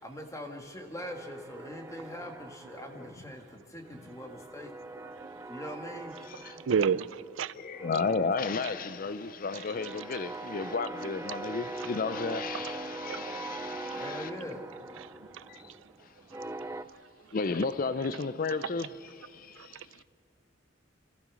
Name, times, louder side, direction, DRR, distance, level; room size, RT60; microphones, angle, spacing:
voice 1, 0.0-4.7 5.5-6.1 13.9-14.7, equal, 15° left, 1.8 m, -42 dB
sound 1, 1.0-3.5 3.8-7.4 7.7-16.8, right 2 dB, 15° right, 0.5 m, -42 dB
voice 2, 2.7-3.1 6.2-6.7 7.5-14.3 15.5-15.8 16.0-16.1 17.3-20.0, left 4 dB, 45° left, 0.5 m, -33 dB
voice 3, 6.4-7.5 13.1-13.4 15.0-15.1 15.3-15.4 19.6-19.7, right 6 dB, 85° right, 0.4 m, -31 dB
29.5 x 14.5 x 6.2 m
head